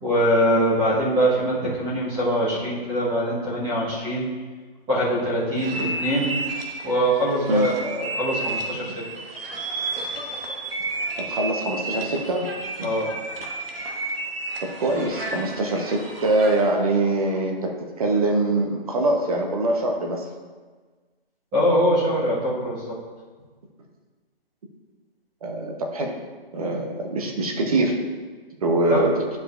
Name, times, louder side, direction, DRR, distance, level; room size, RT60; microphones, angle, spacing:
voice 1, 0.0-4.3 4.9-6.4 6.8-8.9 12.8-13.1 21.5-22.9 28.9-29.1, equal, 15° right, -9 dB, 1.2 m, -23 dB
sound 1, 5.5-16.7, right 2 dB, 70° right, 1.3 m, -32 dB
voice 2, 11.2-12.5 12.8-12.9 14.6-20.3 25.4-26.1 26.5-28.0 28.6-29.2, right 2 dB, 35° right, 2 dB, 0.9 m, -23 dB
10.5 x 5.0 x 2.5 m, 1.4 s
hypercardioid pair, 155°, 30 cm